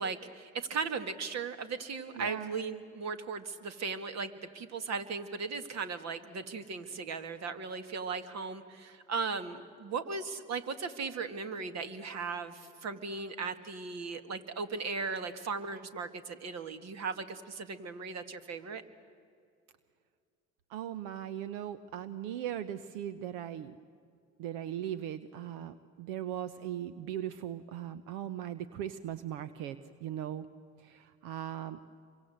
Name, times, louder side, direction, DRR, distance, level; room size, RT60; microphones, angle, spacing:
voice 1, 0.0-18.8, right 4 dB, 50° right, 10 dB, 2.2 m, -37 dB
voice 2, 2.1-2.5 20.7-23.8 24.4-30.5 30.8-31.8, right 11 dB, 80° right, 14 dB, 0.9 m, -39 dB
28.0 x 24.0 x 8.0 m, 2.3 s
hypercardioid pair, 70°, 33 cm